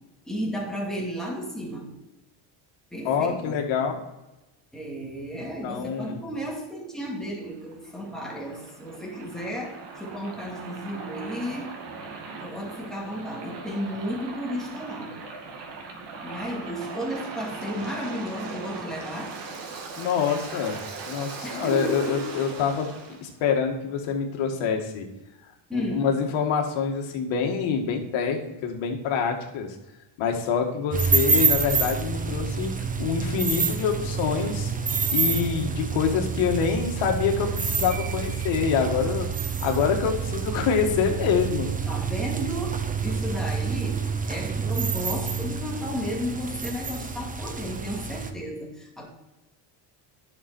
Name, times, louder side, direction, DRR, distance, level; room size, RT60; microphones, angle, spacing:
voice 1, 0.3-2.0 2.9-3.6 4.7-11.8 12.4-15.2 16.2-19.3 21.4-22.3 25.7-26.1 41.9-49.1, equal, ahead, -2 dB, 2.6 m, -33 dB
voice 2, 3.1-4.0 5.4-6.2 20.0-20.8 21.0-22.9 23.2-25.1 25.7-29.8 30.2-34.7 35.1-39.3 39.6-41.7, left 6 dB, 80° left, 3 dB, 2.1 m, -26 dB
Waves surf, 7.4-23.2, right 4 dB, 65° right, 2.2 m, -39 dB
sound 1, 30.9-48.3, right 5 dB, 20° right, 0.8 m, -28 dB
11.0 x 6.2 x 4.4 m, 0.98 s
cardioid pair, 125°, 46 cm